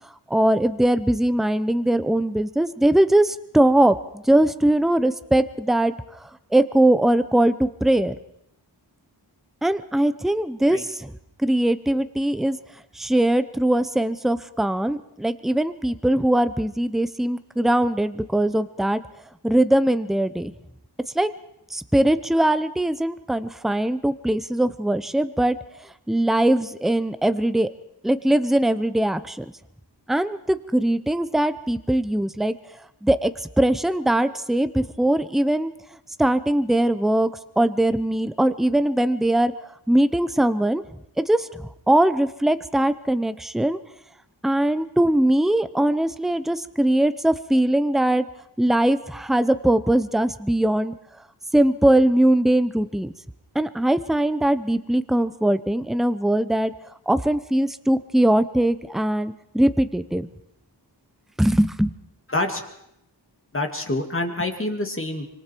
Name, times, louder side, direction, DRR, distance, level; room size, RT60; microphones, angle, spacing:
voice 1, 0.3-5.9 6.5-8.1 9.6-11.1 11.4-12.6 12.9-19.0 19.4-20.5 21.1-21.3 21.7-25.6 26.1-27.7 28.0-29.5 30.1-32.6 33.0-33.3 33.6-35.7 36.2-37.3 37.6-39.5 39.9-40.8 41.2-43.8 44.4-48.2 48.6-50.9 51.5-53.1 53.5-56.7 57.1-60.3 61.4-61.9, right 1 dB, ahead, 12 dB, 0.8 m, -21 dB
voice 2, 63.5-65.3, left 2 dB, 30° left, 4 dB, 2.4 m, -26 dB
25.5 x 24.0 x 4.6 m, 0.78 s
wide cardioid pair, 85°, 43 cm